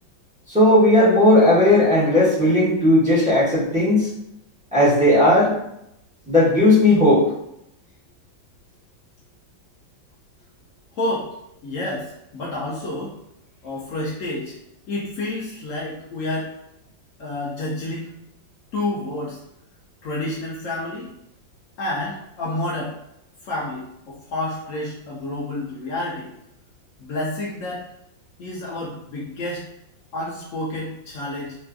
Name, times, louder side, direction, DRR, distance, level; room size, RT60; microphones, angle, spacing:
voice 1, 0.5-4.1 4.7-5.6 6.3-7.2, left 1 dB, 10° right, -9 dB, 0.5 m, -16 dB
voice 2, 10.9-11.3 11.6-13.2 13.6-14.6 14.9-16.5 17.2-18.1 18.7-19.4 20.0-21.1 21.8-22.9 23.4-26.3 27.0-27.8 28.4-29.7 30.1-31.6, left 2 dB, 80° left, -5 dB, 0.7 m, -29 dB
4.2 x 2.4 x 2.3 m, 0.80 s
omnidirectional pair, 2.1 m